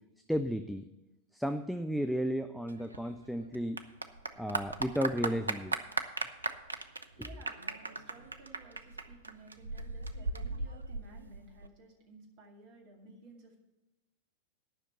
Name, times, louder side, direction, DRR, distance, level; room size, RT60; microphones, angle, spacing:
voice 1, 0.3-0.9 1.3-3.9 4.4-5.7, equal, ahead, 8 dB, 0.5 m, -33 dB
Clapping / Applause, 2.7-11.7, right 3 dB, 80° right, 0.6 m, -38 dB
voice 2, 7.1-13.6, right 3 dB, 45° right, 1 dB, 2.4 m, -56 dB
10.5 x 5.9 x 8.0 m, 1.0 s
figure-of-eight pair, 90°, 0 cm